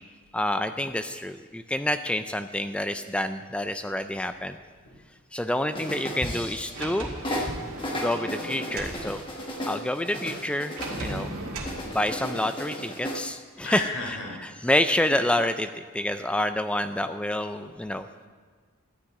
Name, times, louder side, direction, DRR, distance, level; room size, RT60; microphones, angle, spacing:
voice 1, 0.3-4.6 5.3-7.1 7.9-9.2 9.7-11.6 11.8-13.8 14.6-18.1, left 1 dB, 5° left, 9 dB, 0.3 m, -28 dB
sound 1, 5.7-6.9 7.2-11.2 11.6-13.2, equal, 25° left, 1.4 m, -34 dB
Sliding door, 6.7-9.0 10.8-11.8, right 2 dB, 90° right, 2.2 m, -36 dB
voice 2, 13.6-14.4 15.1-15.2, left 2 dB, 75° left, -2 dB, 3.9 m, -35 dB
13.0 x 6.3 x 9.4 m, 1.5 s
head